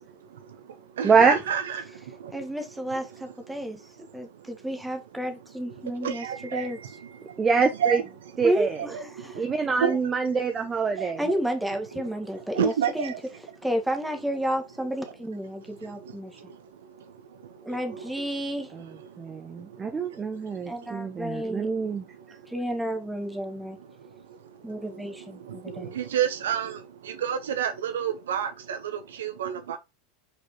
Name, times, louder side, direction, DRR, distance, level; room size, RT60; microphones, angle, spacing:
voice 1, 0.0-2.5 3.5-3.7 4.1-4.5 5.8-8.0 8.8-10.0 11.0-11.4 12.5-13.2 15.7-18.0 19.1-22.5 23.7-29.8, right 8 dB, 70° right, 1.0 m, -32 dB
voice 2, 1.0-1.4 7.4-8.0 8.4-8.8 9.4-11.2 18.7-18.8 19.2-22.0, right 5 dB, 20° right, 0.8 m, -25 dB
voice 3, 2.3-6.3 6.5-6.8 8.4-9.4 11.2-13.1 13.6-16.3 17.6-18.7 20.7-21.7 22.5-23.8 24.6-25.9, equal, 5° right, 1.6 m, -31 dB
6.3 x 5.1 x 3.0 m
figure-of-eight pair, 80°, 0 cm